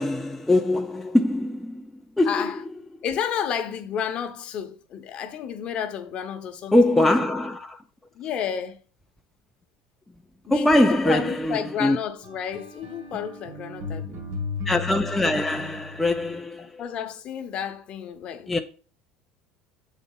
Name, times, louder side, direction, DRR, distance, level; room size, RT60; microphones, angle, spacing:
voice 1, 0.0-1.8 2.2-2.5 6.7-7.8 10.5-12.0 14.7-16.7 18.5-18.6, left 1 dB, 5° left, 0.4 m, -22 dB
voice 2, 2.2-2.6 3.0-7.0 8.1-8.8 10.4-14.3 16.6-18.5, left 8 dB, 40° left, 0.9 m, -31 dB
sound 1, 12.2-16.3, left 4 dB, 55° right, 2.6 m, -35 dB
7.4 x 4.1 x 5.5 m
cardioid pair, 135°, 3 cm